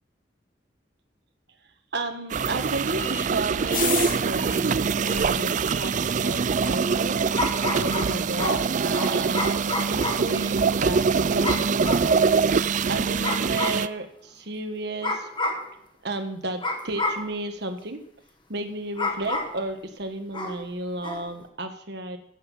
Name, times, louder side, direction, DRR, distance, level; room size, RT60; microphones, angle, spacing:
voice 1, 1.9-9.6 9.9-15.3 16.0-18.0 18.5-22.2, right 2 dB, 65° right, 6 dB, 1.5 m, -33 dB
sound 1, 2.3-12.4, left 5 dB, 50° left, 1.8 m, -39 dB
sound 2, 2.3-13.9, right 5 dB, 45° right, 0.4 m, -24 dB
sound 3, 4.4-4.5 7.3-10.3 11.4-12.1 13.2-13.9 15.0-15.7 16.6-17.3 19.0-19.6 20.3-20.6 21.0-21.3, left 2 dB, 30° left, 1.6 m, -30 dB
14.5 x 8.1 x 5.6 m, 0.69 s
head